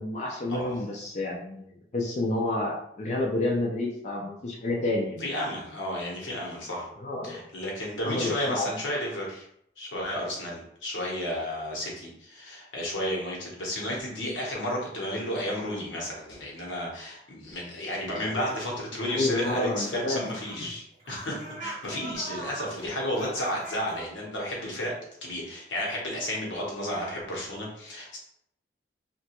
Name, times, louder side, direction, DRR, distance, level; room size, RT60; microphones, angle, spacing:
voice 1, 0.0-5.2 7.0-7.4 8.0-8.7 18.1-18.3 19.1-20.3, left 2 dB, 40° left, -2 dB, 0.4 m, -29 dB
voice 2, 5.2-6.9 7.2-9.4 9.8-24.9 25.2-28.2, left 1 dB, 90° left, -3 dB, 1.0 m, -32 dB
sound 1, 18.0-18.8 19.1-24.0, right 2 dB, 35° right, 0.6 m, -42 dB
2.9 x 2.2 x 2.9 m, 0.73 s
head